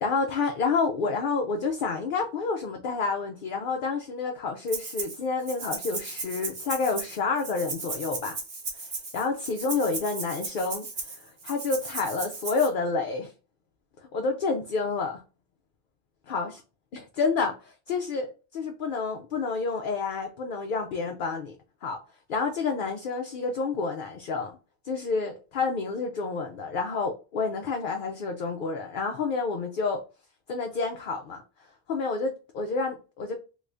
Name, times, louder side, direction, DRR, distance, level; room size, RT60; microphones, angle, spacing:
voice 1, 0.0-8.4 8.8-13.3 14.1-15.2 16.3-16.5 16.9-21.6 21.8-22.0 22.3-24.6 24.9-30.0 30.5-31.4 31.9-33.4, left 4 dB, 60° left, 0.6 m, -29 dB
Rattle (instrument), 4.7-5.2 5.5-12.7, right 3 dB, 80° right, 1.4 m, -36 dB
3.3 x 3.0 x 2.5 m
omnidirectional pair, 1.2 m